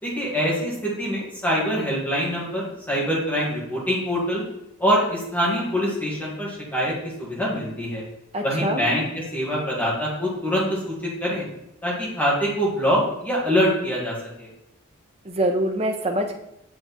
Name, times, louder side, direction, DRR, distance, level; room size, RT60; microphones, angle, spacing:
voice 1, 0.0-4.4 4.8-6.9 7.2-8.0 8.4-11.4 11.8-14.5, equal, 10° left, -6 dB, 2.0 m, -24 dB
voice 2, 8.3-8.9 15.2-16.4, right 1 dB, 30° right, 4 dB, 0.8 m, -24 dB
7.4 x 4.7 x 4.2 m, 0.84 s
head